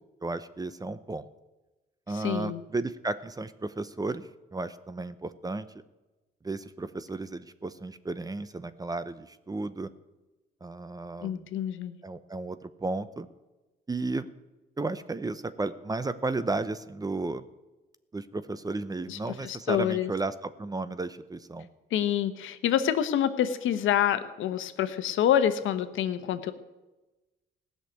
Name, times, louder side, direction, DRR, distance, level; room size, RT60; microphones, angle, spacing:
voice 1, 0.2-1.2 2.1-5.7 6.4-9.9 10.6-11.5 12.0-13.3 13.9-14.3 14.8-17.4 18.1-21.7, right 3 dB, 20° right, 14 dB, 0.7 m, -33 dB
voice 2, 2.1-2.6 11.2-12.0 19.1-20.1 21.9-26.5, left 10 dB, 80° left, 11 dB, 1.0 m, -27 dB
16.0 x 6.6 x 9.3 m, 1.1 s
cardioid pair, 90°, 20 cm